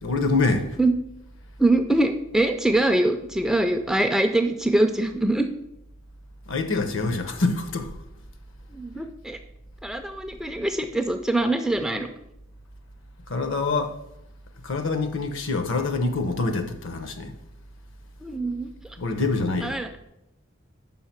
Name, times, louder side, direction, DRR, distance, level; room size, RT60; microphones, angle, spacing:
voice 1, 0.0-0.8 6.5-7.9 13.3-14.0 14.6-17.3 19.0-19.8, left 3 dB, 60° left, 0.8 m, -25 dB
voice 2, 1.6-5.5 8.7-9.4 9.8-12.1 18.2-18.7 19.6-19.9, right 2 dB, ahead, 0.3 m, -23 dB
5.6 x 4.8 x 5.8 m
head